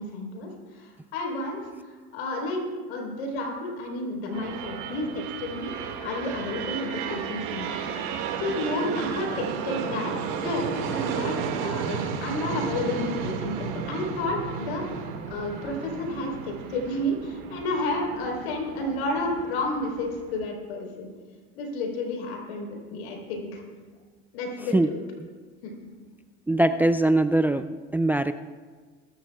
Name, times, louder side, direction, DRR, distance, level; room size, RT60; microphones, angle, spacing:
voice 1, 0.0-1.6 1.9-2.6 2.9-5.7 6.0-7.8 8.4-11.3 11.6-14.8 15.3-21.1 21.5-23.6 24.3-25.0 25.6-25.8, left 2 dB, 85° left, 1 dB, 4.0 m, -31 dB
sound 1, 4.3-20.5, right 7 dB, 65° right, 2.0 m, -33 dB
voice 2, 26.5-28.3, right 2 dB, 5° right, 11 dB, 0.3 m, -22 dB
22.5 x 14.0 x 2.4 m, 1.5 s
supercardioid pair, 95°, 30 cm